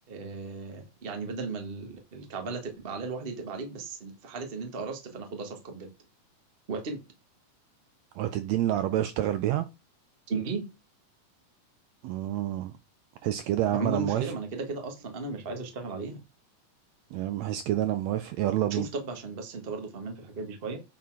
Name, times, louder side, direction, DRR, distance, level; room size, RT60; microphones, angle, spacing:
voice 1, 0.1-5.9 6.7-7.0 10.3-10.6 13.7-16.2 18.7-20.8, right 4 dB, 30° right, 1.0 m, -35 dB
voice 2, 8.2-9.7 12.0-12.7 13.2-14.3 17.1-18.9, right 13 dB, 80° right, 1.6 m, -28 dB
8.6 x 4.1 x 4.7 m
omnidirectional pair, 3.5 m